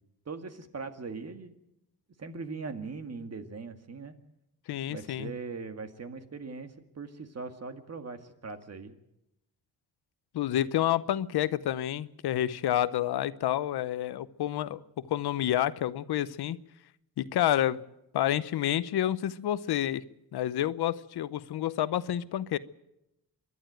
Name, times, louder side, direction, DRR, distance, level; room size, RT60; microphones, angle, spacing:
voice 1, 0.3-1.5 2.2-4.1 4.9-9.0, right 4 dB, 40° right, 1.9 m, -40 dB
voice 2, 4.7-5.3 10.3-14.8 15.1-16.6 17.2-17.8 18.1-20.0 20.3-22.6, left 12 dB, 85° left, 0.8 m, -29 dB
27.0 x 11.5 x 9.0 m
cardioid pair, 110°, 38 cm